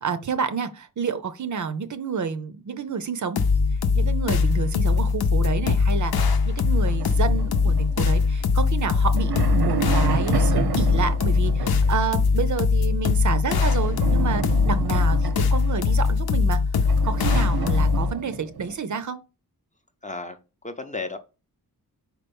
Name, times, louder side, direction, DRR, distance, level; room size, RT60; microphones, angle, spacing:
voice 1, 0.0-3.4 3.9-16.6 17.0-19.2, right 6 dB, 50° right, 0.6 m, -29 dB
sound 1, 3.4-18.1, left 4 dB, 75° left, 0.7 m, -21 dB
sound 2, 6.8-8.4 9.0-12.1 13.6-16.2 16.8-18.7, right 6 dB, 80° right, 0.9 m, -30 dB
voice 2, 20.0-20.4 20.6-21.2, left 3 dB, 20° left, 0.6 m, -33 dB
4.8 x 4.4 x 5.3 m
wide cardioid pair, 165°, 38 cm